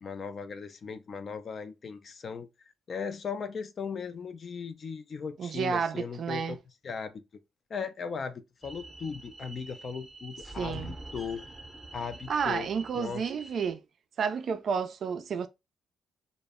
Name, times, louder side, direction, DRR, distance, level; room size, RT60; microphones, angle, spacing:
voice 1, 0.0-2.5 2.9-6.6 6.8-7.2 7.7-11.5 11.9-12.7 12.9-13.2, left 6 dB, 45° left, 0.4 m, -37 dB
voice 2, 5.4-6.6 10.6-10.9 12.3-13.8 14.2-15.5, right 6 dB, 55° right, 0.3 m, -31 dB
sound 1, 8.6-13.7, right 2 dB, 5° right, 0.7 m, -46 dB
2.0 x 2.0 x 3.4 m
cardioid pair, 90°, 0 cm